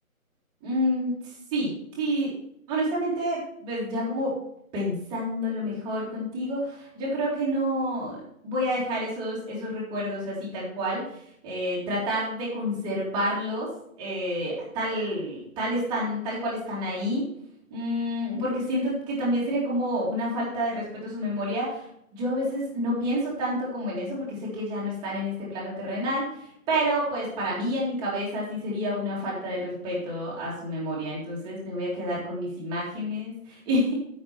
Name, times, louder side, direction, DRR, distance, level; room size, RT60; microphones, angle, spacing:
voice 1, 0.6-1.1 1.5-2.3 2.7-4.3 4.7-11.0 11.4-13.7 14.0-17.2 17.7-21.8 22.1-26.3 26.7-33.9, equal, 10° right, -6 dB, 2.2 m, -29 dB
8.7 x 6.1 x 5.8 m, 0.71 s
figure-of-eight pair, 155°, 43 cm